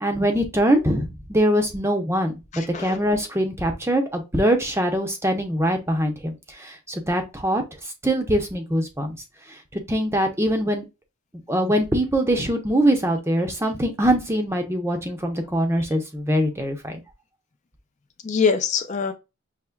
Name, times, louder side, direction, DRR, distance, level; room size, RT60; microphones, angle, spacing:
voice 1, 0.0-7.6 8.0-9.2 9.9-10.8 11.5-17.0, equal, 10° right, 0.7 m, -23 dB
voice 2, 2.5-3.0 18.2-19.1, left 5 dB, 35° left, 0.5 m, -23 dB
5.7 x 2.9 x 2.3 m
head